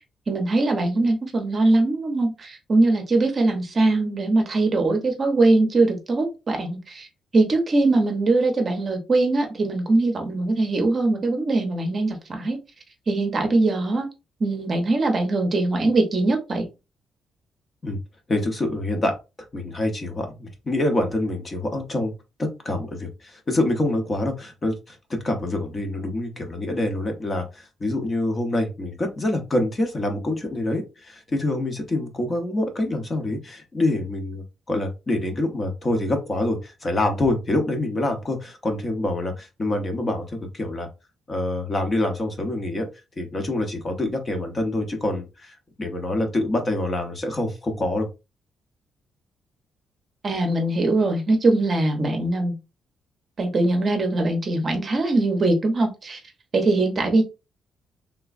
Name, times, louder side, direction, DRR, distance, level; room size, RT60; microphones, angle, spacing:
voice 1, 0.3-7.1 7.3-12.6 13.1-14.1 14.4-16.7 50.2-52.6 53.4-56.2 56.5-57.2, right 2 dB, 35° right, 4 dB, 0.8 m, -21 dB
voice 2, 18.3-19.1 19.5-22.1 22.4-40.9 41.3-42.9 43.2-48.1, left 1 dB, 25° left, 4 dB, 0.8 m, -26 dB
3.4 x 3.0 x 2.4 m, 0.26 s
cardioid pair, 155°, 0 cm